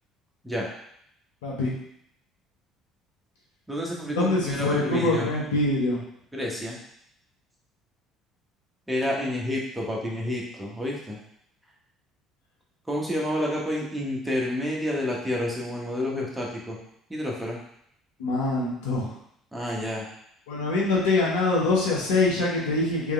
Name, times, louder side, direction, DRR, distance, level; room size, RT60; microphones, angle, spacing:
voice 1, 1.4-1.7 4.1-6.0 18.2-19.1 20.5-23.1, left 2 dB, 80° left, -4 dB, 1.1 m, -24 dB
voice 2, 3.7-5.3 6.3-6.8 8.9-11.2 12.9-16.8 17.1-17.6 19.5-20.1, left 1 dB, 10° right, -3 dB, 1.4 m, -29 dB
3.6 x 3.4 x 3.4 m, 0.71 s
hypercardioid pair, 60°, 0 cm